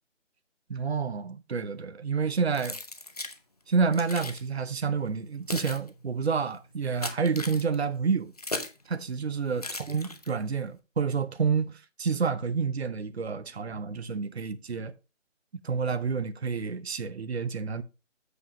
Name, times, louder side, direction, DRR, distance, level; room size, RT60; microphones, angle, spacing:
voice 1, 0.7-2.8 3.7-8.3 8.9-14.9 15.6-17.8, right 5 dB, 55° right, 0.8 m, -29 dB
Keys jangling, 2.5-3.4 3.9-4.4 5.1-8.8 9.6-10.5, left 2 dB, 30° left, 0.7 m, -38 dB
8.1 x 7.4 x 3.1 m
figure-of-eight pair, 160°, 38 cm